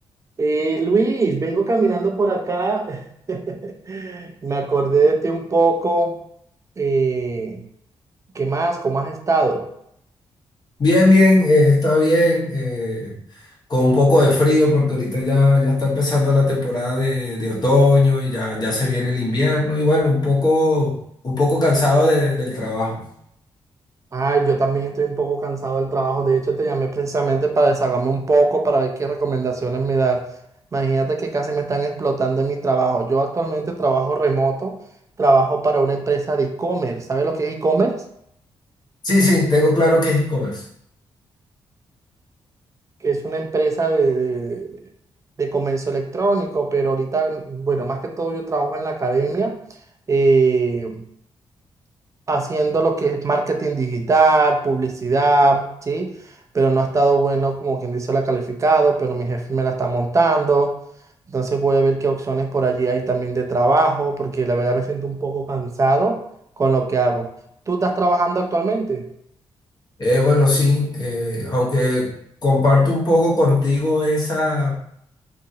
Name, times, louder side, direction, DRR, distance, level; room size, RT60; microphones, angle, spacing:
voice 1, 0.4-6.1 6.8-7.6 8.3-9.6 24.1-30.2 30.7-34.8 35.2-38.0 43.0-44.8 45.4-49.6 50.1-51.0 52.3-56.1 56.5-60.7 61.3-66.2 66.6-67.3 67.7-69.0, right 3 dB, 35° right, 3 dB, 0.5 m, -20 dB
voice 2, 10.8-13.1 13.7-20.9 21.2-23.0 39.0-40.6 70.0-72.1 72.4-74.7, left 2 dB, 45° left, -4 dB, 1.2 m, -18 dB
2.9 x 2.6 x 2.7 m, 0.71 s
cardioid pair, 80°, 10 cm